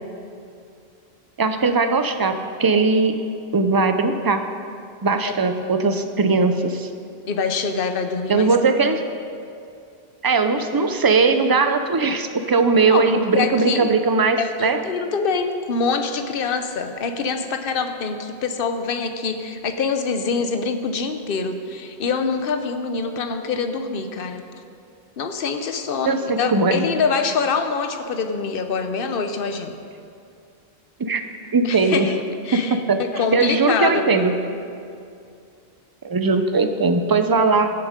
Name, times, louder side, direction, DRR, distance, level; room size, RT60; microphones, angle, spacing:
voice 1, 1.4-3.2 3.5-4.4 5.0-6.9 8.3-9.0 10.2-14.8 26.0-26.8 31.0-31.2 31.5-32.1 32.5-33.0 33.3-34.3 36.0-37.7, right 4 dB, 25° right, 8 dB, 0.5 m, -19 dB
voice 2, 7.3-8.5 12.9-13.9 14.4-24.4 25.2-29.7 31.6-34.4, left 5 dB, 65° left, 7 dB, 1.0 m, -25 dB
16.0 x 7.4 x 5.2 m, 2.5 s
omnidirectional pair, 1.0 m